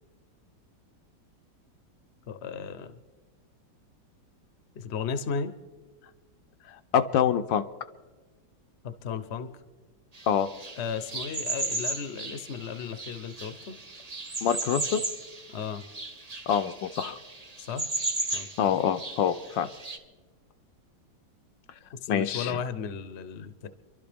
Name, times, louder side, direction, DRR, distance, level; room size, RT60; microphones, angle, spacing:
voice 1, 2.3-2.9 4.8-5.5 8.8-9.5 10.8-13.8 15.5-15.8 17.6-17.9 18.3-18.5 22.0-23.7, left 6 dB, 50° left, 10 dB, 0.9 m, -35 dB
voice 2, 6.9-7.6 10.3-10.5 14.4-15.0 16.5-17.2 18.6-19.7 22.1-22.6, left 8 dB, 75° left, 9 dB, 1.3 m, -25 dB
sound 1, 10.1-20.0, right 2 dB, 25° right, 0.9 m, -36 dB
29.5 x 12.0 x 3.4 m, 1.3 s
omnidirectional pair, 2.0 m